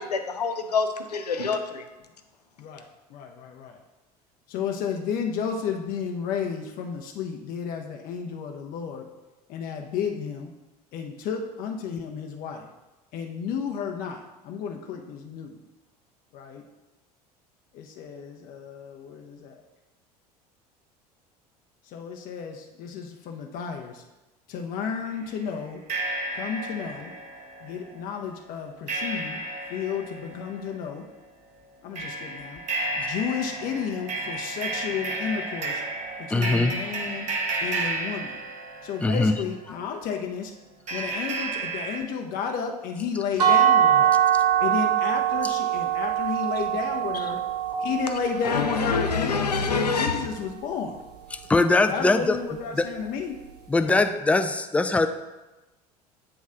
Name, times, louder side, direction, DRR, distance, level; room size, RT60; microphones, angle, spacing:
voice 1, 0.0-1.8 48.4-50.3, left 5 dB, 85° left, 7 dB, 0.5 m, -26 dB
voice 2, 2.6-3.8 4.5-9.0 9.5-10.5 10.9-12.7 13.1-15.6 16.3-16.6 17.7-19.6 21.9-24.0 24.5-25.8 26.3-27.1 27.6-29.4 29.7-31.0 31.8-32.6 32.9-35.8 36.2-37.3 37.6-38.4 38.8-40.5 40.9-44.1 44.6-47.4 47.8-51.0 51.9-53.4, left 6 dB, 45° left, 3 dB, 0.7 m, -32 dB
sound 1, 25.1-25.2 25.9-39.9 40.9-42.0, right 2 dB, 35° right, 0.9 m, -33 dB
voice 3, 36.3-36.8 39.0-39.3 51.3-52.4 52.8-52.9 53.7-55.1, left 3 dB, 5° left, 9 dB, 0.3 m, -21 dB
sound 2, 43.4-49.2, right 9 dB, 80° right, 0.7 m, -23 dB
8.7 x 3.1 x 3.7 m, 1.1 s
figure-of-eight pair, 70°, 20 cm